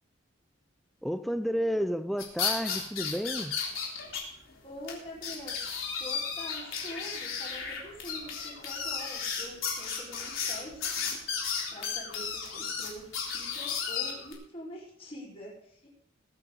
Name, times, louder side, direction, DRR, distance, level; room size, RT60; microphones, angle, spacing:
voice 1, 1.0-3.6, equal, ahead, 11 dB, 0.4 m, -31 dB
sound 1, 2.2-4.2 4.5-4.6 4.9-5.0 5.2-14.3, left 6 dB, 80° left, 3.7 m, -34 dB
voice 2, 4.6-5.6 6.0-11.0 11.7-16.0, left 1 dB, 30° left, -5 dB, 5.0 m, -45 dB
21.5 x 8.7 x 4.0 m, 0.67 s
head